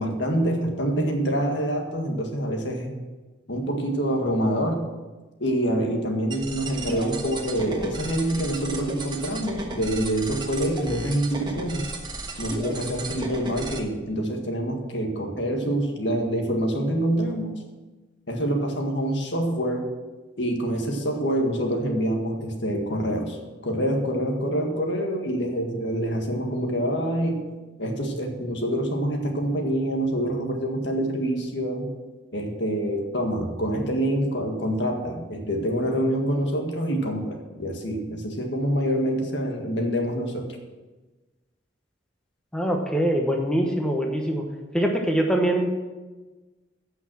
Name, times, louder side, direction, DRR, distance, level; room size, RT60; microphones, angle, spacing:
voice 1, 0.0-2.9 3.5-4.9 5.4-11.9 12.4-17.5 18.3-19.9 20.4-31.9 32.3-40.5, right 1 dB, 70° left, 2 dB, 1.9 m, -26 dB
sound 1, 6.3-13.8, right 2 dB, 25° right, 1.2 m, -34 dB
voice 2, 42.5-44.4 44.7-45.8, right 1 dB, 5° left, 1 dB, 1.1 m, -23 dB
15.5 x 5.8 x 6.2 m, 1.2 s
head